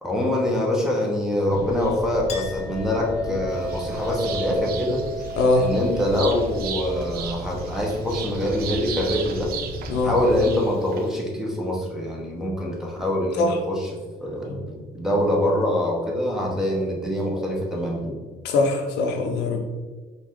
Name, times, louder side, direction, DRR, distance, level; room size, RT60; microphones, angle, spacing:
voice 1, 0.0-5.0 5.6-9.5 10.0-18.1, left 1 dB, 5° right, -2 dB, 0.9 m, -24 dB
sound 1, 1.5-10.6, left 1 dB, 20° left, 1.1 m, -37 dB
Chink clink, 2.3-9.3, right 1 dB, 40° left, 0.7 m, -36 dB
sound 2, 3.5-11.2, right 7 dB, 65° right, 0.5 m, -36 dB
voice 2, 5.4-5.7 9.9-10.1 13.4-13.6 14.5-14.6 18.4-19.6, left 2 dB, 85° left, 3 dB, 0.7 m, -22 dB
4.9 x 2.5 x 3.6 m, 1.3 s
cardioid pair, 110°, 17 cm